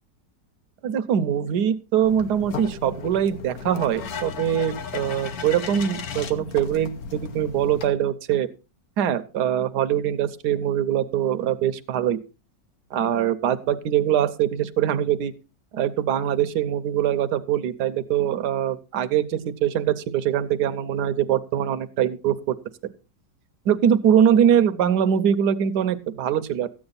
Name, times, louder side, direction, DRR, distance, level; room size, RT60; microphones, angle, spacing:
voice 1, 0.8-8.5 9.0-12.2 12.9-15.3 15.7-22.5 23.7-26.8, right 9 dB, 75° right, 11 dB, 1.3 m, -23 dB
sound 1, 2.0-7.9, left 6 dB, 60° left, 1.4 m, -35 dB
14.0 x 8.8 x 4.1 m, 0.32 s
omnidirectional pair, 1.8 m